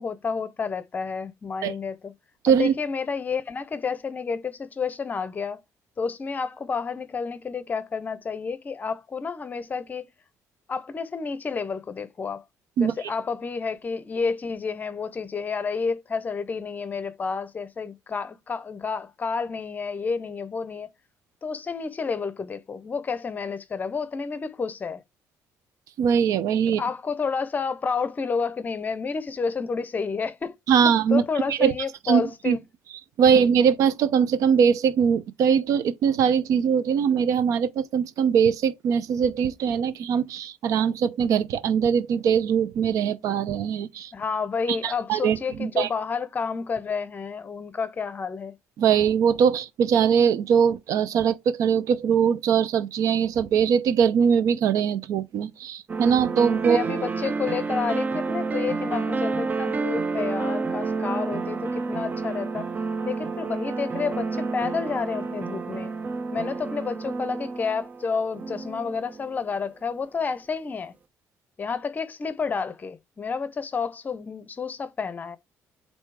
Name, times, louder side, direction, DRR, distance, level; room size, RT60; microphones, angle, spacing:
voice 1, 0.0-2.1 2.5-5.6 6.0-10.1 10.7-12.4 12.8-20.9 21.4-25.0 26.8-30.5 30.8-32.7 33.2-33.5 44.1-48.5 56.6-62.7 63.0-65.9 66.3-70.9 71.6-75.4, left 5 dB, 30° left, 0.7 m, -30 dB
voice 2, 26.0-26.8 30.7-31.2 31.5-31.7 32.1-32.6 33.2-44.1 44.7-45.9 48.8-56.8, right 7 dB, 70° right, 0.7 m, -21 dB
sound 1, 55.9-69.4, right 4 dB, 30° right, 0.5 m, -29 dB
8.1 x 2.7 x 4.7 m
cardioid pair, 120°, 6 cm